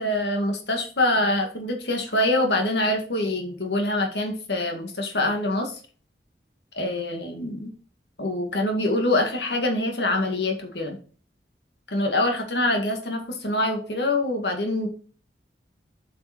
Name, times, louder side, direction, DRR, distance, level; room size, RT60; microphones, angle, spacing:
voice 1, 0.0-5.8 6.7-7.7 8.2-11.0 11.9-14.9, left 1 dB, 75° left, 3 dB, 2.0 m, -25 dB
7.8 x 5.4 x 4.4 m, 0.41 s
head